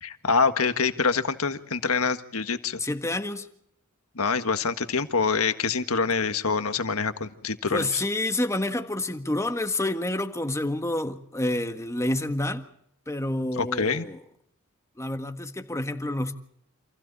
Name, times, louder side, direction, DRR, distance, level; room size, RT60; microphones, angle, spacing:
voice 1, 0.0-2.8 4.1-8.0 13.6-14.0, left 5 dB, 85° left, 1.6 m, -25 dB
voice 2, 2.8-3.5 7.6-12.6 13.1-14.2 15.0-16.4, left 1 dB, 15° left, 1.6 m, -28 dB
29.0 x 27.5 x 4.2 m
head